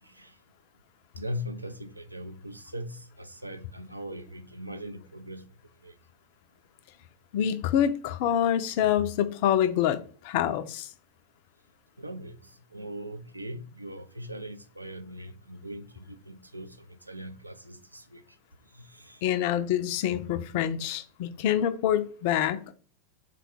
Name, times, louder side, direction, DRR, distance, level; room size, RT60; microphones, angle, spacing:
voice 1, 0.0-0.3 1.2-5.5 5.8-5.9 12.0-18.2 18.7-19.2, equal, 85° right, 0.3 m, -40 dB
voice 2, 7.3-10.9 19.2-22.7, left 10 dB, 50° left, 0.3 m, -26 dB
3.7 x 2.2 x 4.3 m
figure-of-eight pair, 90°, 0 cm